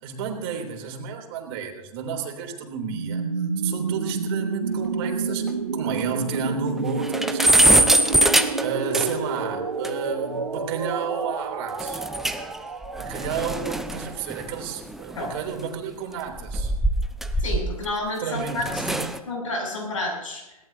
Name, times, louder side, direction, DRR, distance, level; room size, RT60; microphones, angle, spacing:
voice 1, 0.0-3.2 3.6-7.9 8.1-12.0 13.0-16.7 18.2-19.1, right 6 dB, 40° right, 3 dB, 3.4 m, -32 dB
sound 1, 2.8-14.6, right 4 dB, 75° right, 1.8 m, -29 dB
sound 2, 5.0-5.1 5.5-5.6 5.9-6.0 6.3-6.4 6.8-9.4 9.8-9.9 11.8-12.6 12.8-15.5 16.3-17.9 18.4-19.2, right 1 dB, ahead, 0.7 m, -23 dB
voice 2, 17.4-18.8 19.3-20.6, left 2 dB, 65° left, 1 dB, 7.7 m, -30 dB
21.5 x 18.0 x 2.8 m, 0.95 s
figure-of-eight pair, 115°, 19 cm